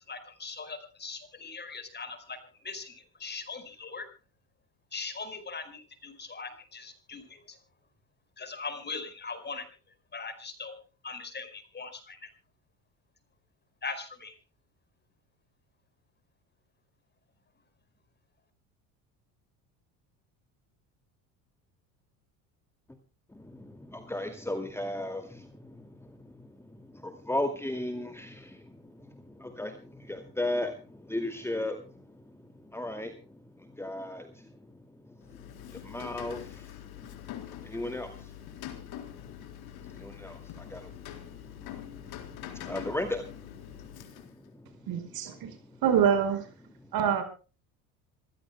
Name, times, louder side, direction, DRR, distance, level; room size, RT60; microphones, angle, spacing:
voice 1, 0.1-4.1 4.9-7.6 8.4-9.7 10.1-10.8 11.0-12.3 13.8-14.4, left 4 dB, 25° left, 10 dB, 4.8 m, -40 dB
voice 2, 23.3-45.8 46.8-46.9, left 1 dB, 5° left, 7 dB, 2.2 m, -38 dB
Rain, 35.2-44.5, left 11 dB, 60° left, 3.9 m, -44 dB
voice 3, 44.9-45.5 45.8-46.4 46.9-47.2, right 8 dB, 55° right, 9 dB, 5.1 m, -25 dB
26.0 x 16.5 x 2.2 m, 0.35 s
supercardioid pair, 90°, 42 cm